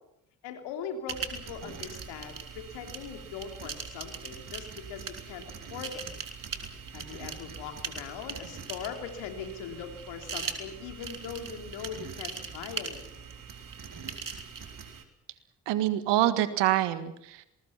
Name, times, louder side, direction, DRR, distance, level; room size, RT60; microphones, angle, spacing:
voice 1, 0.4-5.4 5.7-6.0 6.9-13.2, left 7 dB, 75° left, 5 dB, 3.3 m, -40 dB
sound 1, 1.1-15.0, right 6 dB, 50° right, 3.5 m, -40 dB
voice 2, 15.7-17.5, right 13 dB, 75° right, 13 dB, 1.8 m, -26 dB
27.0 x 20.5 x 5.9 m, 0.81 s
hypercardioid pair, 40°, 42 cm